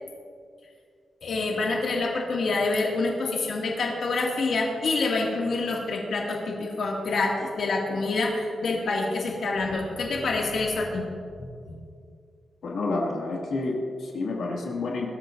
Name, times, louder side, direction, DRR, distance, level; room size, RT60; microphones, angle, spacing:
voice 1, 1.2-11.1 11.4-11.8, left 3 dB, 65° left, -2 dB, 2.1 m, -27 dB
voice 2, 12.6-15.1, left 3 dB, 85° left, -2 dB, 2.1 m, -29 dB
22.0 x 13.0 x 2.6 m, 2.2 s
wide cardioid pair, 160°, 0 cm